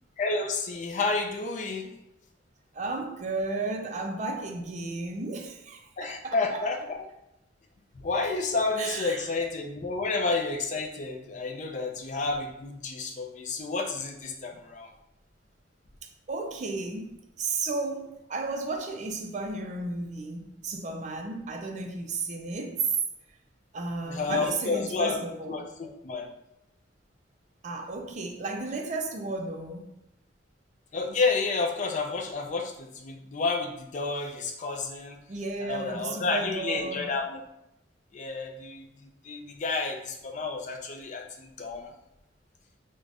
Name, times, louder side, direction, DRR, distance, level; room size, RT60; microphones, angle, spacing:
voice 1, 0.2-1.9 6.0-7.1 7.9-14.9 24.1-25.2 25.5-26.3 30.9-35.2 35.6-37.4 38.1-41.9, left 3 dB, 40° left, 0.4 m, -30 dB
voice 2, 2.7-6.6 8.8-9.3 16.3-23.0 23.7-25.6 27.6-29.9 35.3-37.1, right 3 dB, 40° right, 0.4 m, -33 dB
4.8 x 2.1 x 2.5 m
head